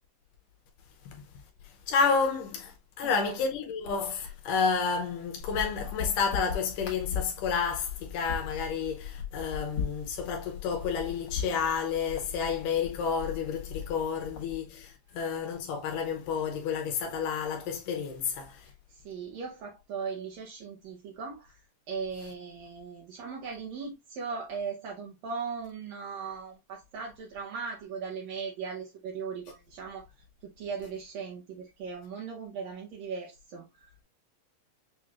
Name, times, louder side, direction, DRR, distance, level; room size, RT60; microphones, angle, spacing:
voice 1, 1.6-18.7, left 5 dB, 75° left, 2.2 m, -30 dB
voice 2, 3.0-3.4 15.1-15.2 18.9-21.6 21.9-30.1 30.4-34.0, right 5 dB, 70° right, 1.7 m, -38 dB
sound 1, 5.4-14.6, left 7 dB, 55° left, 2.1 m, -38 dB
6.6 x 3.0 x 2.4 m
omnidirectional pair, 4.0 m